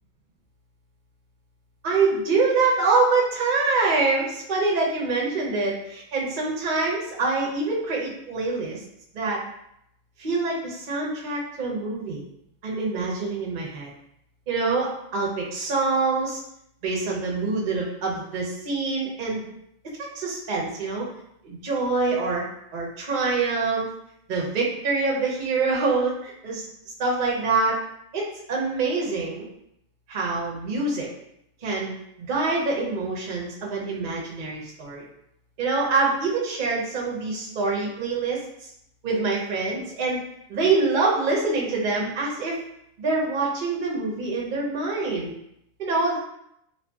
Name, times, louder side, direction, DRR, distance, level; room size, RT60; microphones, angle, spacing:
voice 1, 1.8-8.8 9.1-9.4 10.2-12.2 12.6-13.9 14.5-16.4 16.8-19.4 20.0-21.1 21.4-22.4 22.7-23.9 24.3-26.6 27.0-27.8 28.1-29.5 30.1-31.1 31.6-31.9 32.2-35.0 35.6-38.7 39.0-40.2 40.5-42.6 43.0-45.3 45.8-46.2, right 3 dB, 50° right, -3 dB, 0.6 m, -25 dB
2.6 x 2.4 x 2.3 m, 0.76 s
omnidirectional pair, 1.4 m